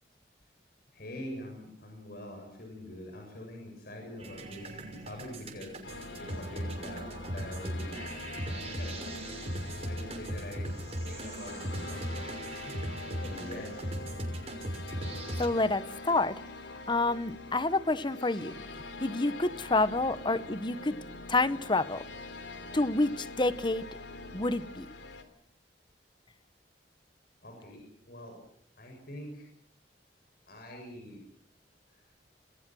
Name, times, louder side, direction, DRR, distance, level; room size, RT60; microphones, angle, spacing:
voice 1, 0.9-9.0 9.9-10.7 11.1-13.7 27.4-28.4 28.8-29.5 30.5-31.2, left 1 dB, 55° left, 2 dB, 7.5 m, -45 dB
sound 1, 4.2-15.5, right 1 dB, 35° right, 6.3 m, -38 dB
sound 2, 5.8-25.2, left 2 dB, 80° left, 3.5 m, -44 dB
voice 2, 15.4-16.4 16.9-18.5 19.0-21.0 21.3-22.1 22.7-23.8 24.3-24.9, left 2 dB, 25° left, 14 dB, 1.1 m, -28 dB
28.0 x 22.5 x 6.3 m, 0.65 s
head